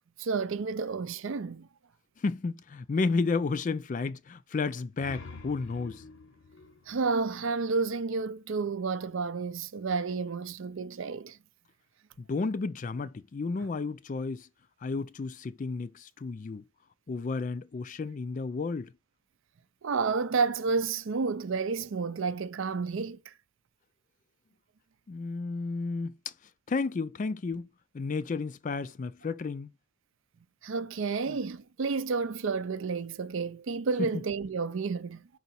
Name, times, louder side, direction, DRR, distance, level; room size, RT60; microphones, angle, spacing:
voice 1, 0.2-1.7 6.9-11.4 19.8-23.3 30.6-35.2, right 4 dB, 60° right, 0.5 m, -31 dB
voice 2, 2.2-6.0 12.2-14.5 14.8-16.6 17.1-18.9 25.1-26.1 26.7-27.7 27.9-29.7 31.3-31.4 34.0-34.1, left 4 dB, 35° left, 0.3 m, -32 dB
sound 1, 4.7-8.1, left 3 dB, 55° left, 0.8 m, -49 dB
5.6 x 4.0 x 4.2 m
head